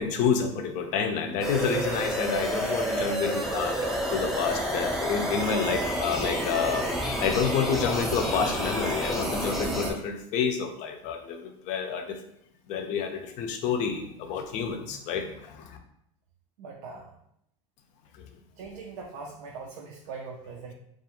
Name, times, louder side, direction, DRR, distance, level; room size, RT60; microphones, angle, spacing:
voice 1, 0.0-6.8 7.2-11.4 11.7-12.2 12.7-15.8, left 6 dB, 50° left, 5 dB, 0.5 m, -29 dB
sound 1, 1.4-9.9, right 1 dB, ahead, 0.4 m, -29 dB
voice 2, 16.6-17.2 18.6-20.7, right 4 dB, 75° right, -1 dB, 0.4 m, -41 dB
2.4 x 2.4 x 2.9 m, 0.74 s
supercardioid pair, 120°, 16 cm